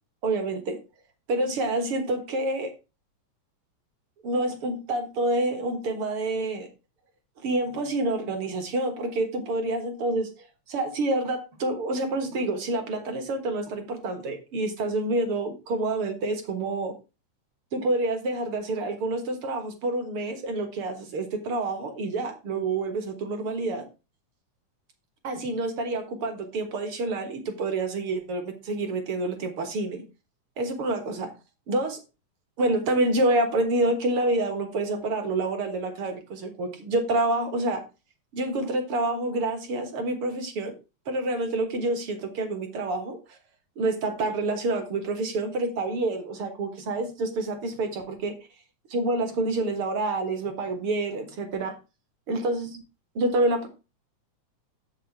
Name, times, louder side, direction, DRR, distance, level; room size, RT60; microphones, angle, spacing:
voice 1, 0.2-0.8 1.3-2.7 4.2-6.7 7.4-10.3 10.7-16.9 17.7-23.9 25.2-30.0 30.6-31.3 31.7-32.0 32.6-37.8 38.3-40.8 41.1-43.4 43.8-48.3 48.9-51.8 52.3-52.8 53.2-53.7, right 2 dB, 55° right, 6 dB, 2.0 m, -28 dB
7.6 x 5.7 x 4.5 m, 0.29 s
omnidirectional pair, 3.3 m